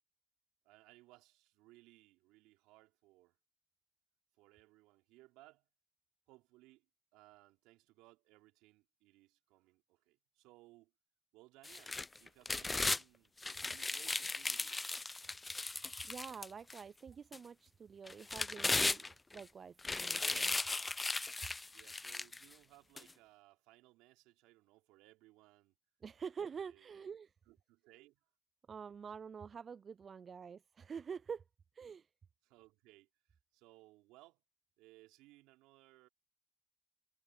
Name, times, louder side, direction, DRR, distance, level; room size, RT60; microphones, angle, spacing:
voice 1, 0.6-3.4 4.4-5.7 6.3-6.9 7.1-10.9 11.3-13.3 13.6-14.8 21.7-25.7 26.6-27.2 27.5-28.2 32.4-34.4 34.8-36.1, right 20 dB, 80° right, 3.7 m, -64 dB
sound 1, 11.6-13.0 13.4-16.8 17.3-17.4 18.1-19.4 19.8-22.4 23.0-23.1, left 3 dB, 25° left, 0.6 m, -37 dB
voice 2, 16.0-19.1 19.3-20.6 26.0-27.3 28.7-31.4 31.7-32.1, right 6 dB, 50° right, 0.5 m, -47 dB
hypercardioid pair, 45°, 0 cm